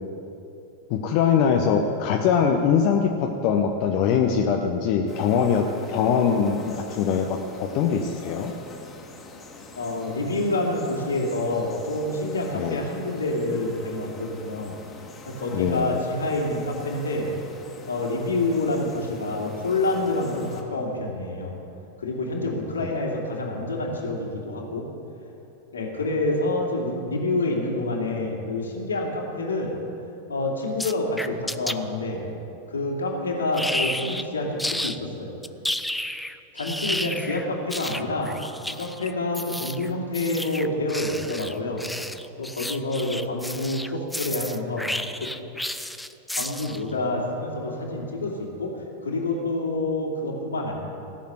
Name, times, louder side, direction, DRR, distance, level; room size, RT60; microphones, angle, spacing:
voice 1, 0.9-8.5 12.5-12.8 15.5-15.9 22.8-22.9, left 7 dB, 45° left, 2 dB, 1.0 m, -22 dB
sound 1, 5.1-20.6, left 3 dB, 20° left, 2.1 m, -44 dB
voice 2, 9.7-14.7 15.3-17.3 17.8-21.6 22.0-24.8 25.7-29.7 30.3-32.2 32.7-35.4 36.5-38.3 38.6-41.8 42.4-44.9 45.2-45.3 46.3-50.8, left 2 dB, 70° left, -1 dB, 2.9 m, -27 dB
sound 2, 30.8-31.7 33.5-34.3 34.6-35.0 35.4-46.9, left 1 dB, 5° left, 0.5 m, -31 dB
17.0 x 7.3 x 9.4 m, 2.8 s
figure-of-eight pair, 90°, 0 cm